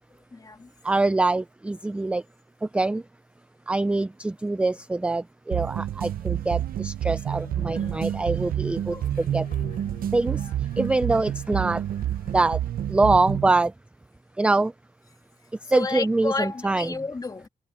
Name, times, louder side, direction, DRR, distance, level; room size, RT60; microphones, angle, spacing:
voice 1, 0.3-0.7 7.7-8.2 8.9-9.1 10.3-10.5 15.6-17.5, left 3 dB, 25° left, 2.5 m, -32 dB
voice 2, 0.8-2.2 2.7-3.0 3.7-9.0 9.3-9.4 10.1-10.4 10.8-11.8 12.3-12.6 12.9-13.7 14.4-14.7 15.7-16.9, right 2 dB, 10° right, 0.3 m, -24 dB
sound 1, 5.5-13.5, right 11 dB, 80° right, 0.6 m, -29 dB
Train, 7.3-12.6, left 8 dB, 70° left, 5.2 m, -49 dB
wide cardioid pair, 165°, 15 cm